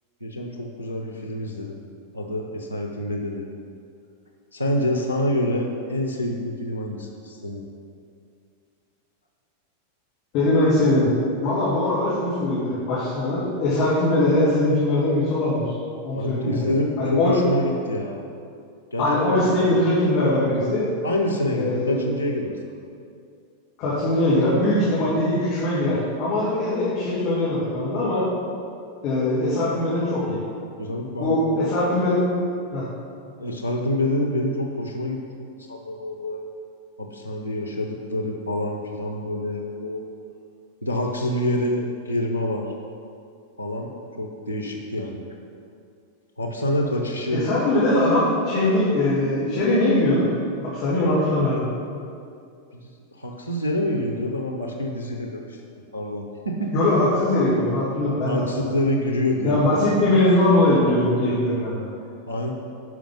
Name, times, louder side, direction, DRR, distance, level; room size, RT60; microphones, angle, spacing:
voice 1, 0.2-1.8 2.1-3.5 4.5-7.6 16.1-18.2 18.9-19.6 21.0-22.6 25.0-25.1 30.8-31.6 33.4-35.2 35.6-36.4 37.0-40.1 40.8-42.7 43.6-43.9 44.2-45.2 46.4-47.5 52.7-55.6 55.9-56.7 58.3-59.9 62.3-62.5, left 1 dB, 90° right, 1 dB, 0.8 m, -27 dB
voice 2, 10.3-11.1 11.4-15.6 16.0-16.6 17.0-17.4 19.0-20.9 21.5-22.0 23.8-28.2 29.0-30.4 31.2-32.2 32.7-32.9 47.3-50.3 50.6-51.6 56.7-58.7 59.4-61.9, left 1 dB, 45° left, -9 dB, 2.4 m, -21 dB
11.0 x 5.3 x 5.3 m, 2.4 s
figure-of-eight pair, 90°, 0 cm